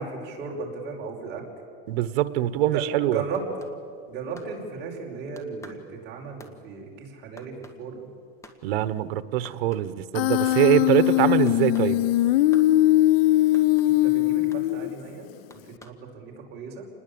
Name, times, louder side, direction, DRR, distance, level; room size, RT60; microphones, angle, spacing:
voice 1, 0.0-1.5 2.7-3.7 4.1-8.1 14.0-15.3 15.6-16.9, right 4 dB, 35° right, -1 dB, 5.3 m, -35 dB
voice 2, 1.9-3.2 8.6-12.0, right 13 dB, 85° right, 14 dB, 1.2 m, -23 dB
sound 1, 3.3-5.1 5.4-8.6 8.9-9.0 9.3-10.0 10.3-10.9 11.5-11.9 12.5-12.7 13.5-13.9 14.5-14.6 15.5-16.0, left 1 dB, 10° left, 1.7 m, -50 dB
Human voice, 10.1-15.1, left 16 dB, 75° left, 0.7 m, -20 dB
27.5 x 20.5 x 8.7 m, 2.3 s
supercardioid pair, 160°, 30 cm